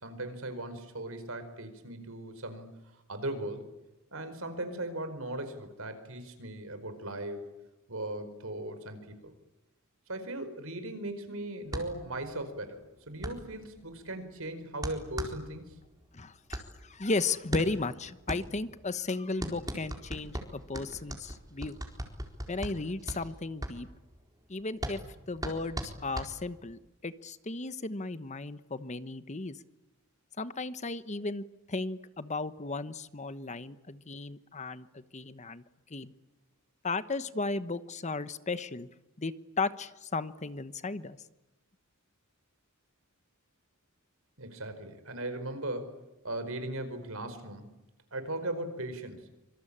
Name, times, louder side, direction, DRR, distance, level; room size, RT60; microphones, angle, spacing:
voice 1, 0.0-2.7 3.1-3.7 4.1-7.4 7.9-9.3 10.1-12.8 13.1-15.7 44.4-45.9 46.2-47.8 48.1-49.2, right 1 dB, 75° right, 9 dB, 4.9 m, -38 dB
sound 1, 11.7-26.8, right 1 dB, 20° right, 4.2 m, -40 dB
voice 2, 16.1-21.8 22.5-23.9 24.5-25.0 25.3-29.6 30.4-35.6 35.9-36.1 36.8-38.9 39.2-41.2, left 3 dB, 35° left, 13 dB, 1.1 m, -35 dB
26.0 x 25.0 x 8.8 m, 1.0 s
head